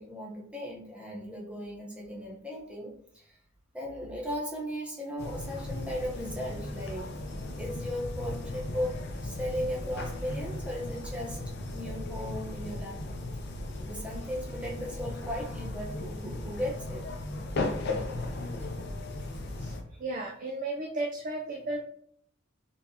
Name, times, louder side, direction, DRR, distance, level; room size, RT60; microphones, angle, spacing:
voice 1, 0.0-3.3 3.7-7.1 7.5-11.4 11.7-13.0 13.8-17.0, equal, 5° right, -4 dB, 0.9 m, -37 dB
sound 1, 5.2-19.8, left 2 dB, 55° left, 0.6 m, -36 dB
voice 2, 19.6-21.8, right 2 dB, 40° right, 1 dB, 0.4 m, -34 dB
4.2 x 3.5 x 2.8 m, 0.65 s
head